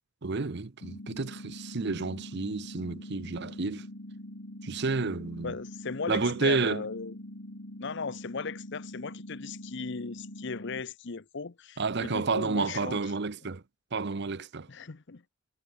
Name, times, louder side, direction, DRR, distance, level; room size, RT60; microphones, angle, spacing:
voice 1, 0.2-3.9 4.6-5.5 6.1-6.8 11.8-13.6 13.9-14.7, right 4 dB, 55° right, 0.8 m, -30 dB
sound 1, 0.8-10.8, left 1 dB, 75° left, 3.2 m, -44 dB
voice 2, 5.4-7.1 7.8-13.0 14.7-15.2, left 4 dB, 60° left, 0.8 m, -37 dB
head